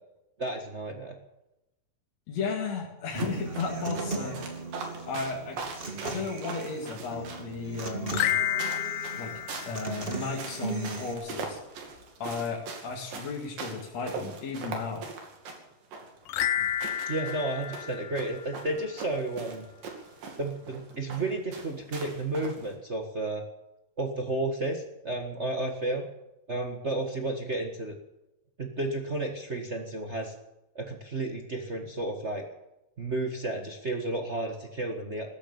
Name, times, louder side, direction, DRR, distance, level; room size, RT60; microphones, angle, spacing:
voice 1, 0.4-1.2 17.1-19.7 20.4-23.4 24.0-26.0 26.5-27.9 28.6-30.3 30.7-32.4 33.0-35.3, right 2 dB, 50° right, 3 dB, 0.8 m, -32 dB
voice 2, 2.3-4.4 5.0-5.6 6.0-8.4 9.1-9.3 9.6-11.6 12.2-15.1, left 4 dB, 55° left, -1 dB, 3.2 m, -34 dB
Human voice / Acoustic guitar, 3.1-11.1, right 4 dB, 25° right, 1.2 m, -38 dB
sound 1, 3.2-22.7, right 4 dB, 75° right, 4.1 m, -41 dB
sound 2, 8.0-10.5 16.3-18.9, left 11 dB, 85° left, 2.4 m, -31 dB
15.5 x 13.0 x 7.2 m, 0.92 s
omnidirectional pair, 4.0 m